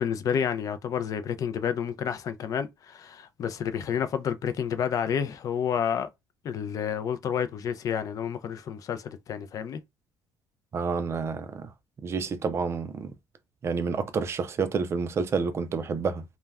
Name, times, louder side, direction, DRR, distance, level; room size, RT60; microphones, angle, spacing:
voice 1, 0.0-6.1 6.4-9.8, left 8 dB, 45° left, 0.4 m, -30 dB
voice 2, 10.7-11.7 12.0-13.1 13.6-16.2, right 5 dB, 30° right, 0.4 m, -29 dB
2.2 x 2.1 x 3.3 m
cardioid pair, 140°, 8 cm